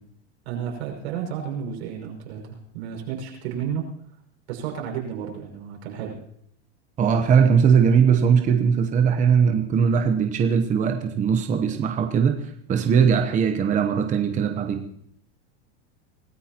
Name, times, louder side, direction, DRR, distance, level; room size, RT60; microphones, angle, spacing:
voice 1, 0.5-3.9 4.5-6.2, right 8 dB, 75° right, 0 dB, 5.7 m, -32 dB
voice 2, 7.0-14.8, right 7 dB, 25° right, 5 dB, 0.9 m, -20 dB
24.5 x 14.0 x 3.0 m, 0.69 s
supercardioid pair, 140°, 32 cm